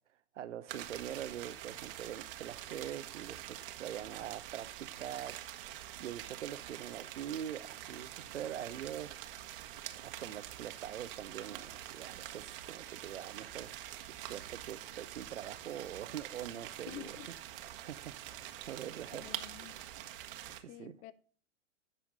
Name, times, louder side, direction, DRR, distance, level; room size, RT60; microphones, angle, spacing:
voice 1, 0.1-9.2 10.0-13.9 14.2-17.2 17.5-19.5 20.5-21.0, right 10 dB, 75° right, 0.7 m, -44 dB
sound 1, 0.7-20.6, right 12 dB, 50° right, 1.2 m, -46 dB
voice 2, 16.9-17.3 19.1-19.8 20.7-21.1, left 15 dB, 20° left, 0.4 m, -49 dB
14.5 x 5.7 x 2.6 m
figure-of-eight pair, 105°, 36 cm